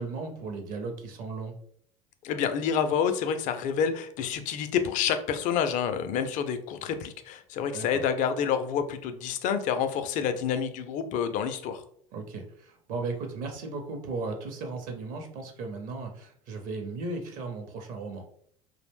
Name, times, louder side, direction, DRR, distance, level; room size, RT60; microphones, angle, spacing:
voice 1, 0.0-1.6 7.7-8.0 12.1-18.3, right 3 dB, 50° right, 4 dB, 0.6 m, -36 dB
voice 2, 2.2-11.8, left 7 dB, 45° left, 9 dB, 0.4 m, -28 dB
2.4 x 2.1 x 3.4 m, 0.63 s
figure-of-eight pair, 70°, 18 cm